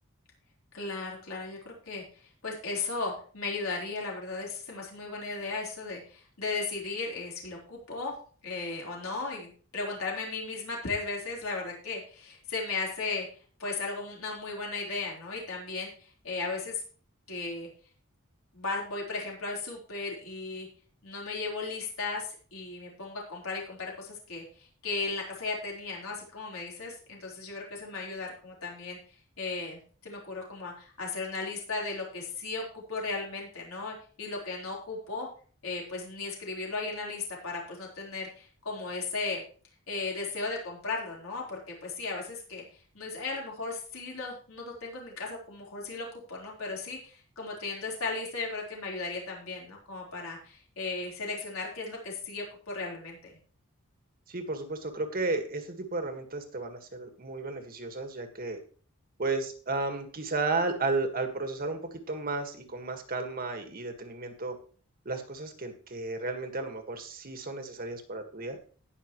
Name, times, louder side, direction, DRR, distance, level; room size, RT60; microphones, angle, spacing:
voice 1, 0.7-8.1 8.4-13.3 13.6-16.8 17.3-17.7 18.5-20.7 21.0-29.0 29.4-35.3 35.6-39.4 39.9-42.6 42.9-53.4, left 3 dB, 75° left, -2 dB, 4.1 m, -36 dB
voice 2, 54.3-58.6 59.2-64.6 65.1-68.6, right 3 dB, 45° right, 6 dB, 1.8 m, -33 dB
19.0 x 6.5 x 3.1 m, 0.41 s
head